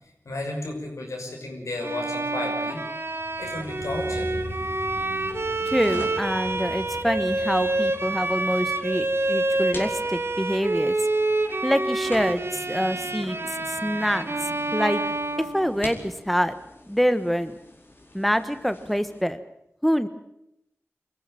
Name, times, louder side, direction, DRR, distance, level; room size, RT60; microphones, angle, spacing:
voice 1, 0.2-2.8 3.4-4.3, left 2 dB, 90° left, 1 dB, 6.0 m, -33 dB
Bowed string instrument, 1.8-16.1, right 2 dB, 50° right, 2.3 m, -28 dB
sound 1, 3.1-14.1 14.3-14.4, equal, 65° left, 3.6 m, -43 dB
sound 2, 3.4-19.2, left 1 dB, 45° left, 4.6 m, -46 dB
voice 2, 5.7-10.9 11.6-15.0 15.4-16.5 16.8-17.5 18.1-19.4 19.8-20.1, equal, ahead, 11 dB, 1.3 m, -26 dB
23.5 x 15.0 x 9.1 m, 0.80 s
wide cardioid pair, 50°, 5 cm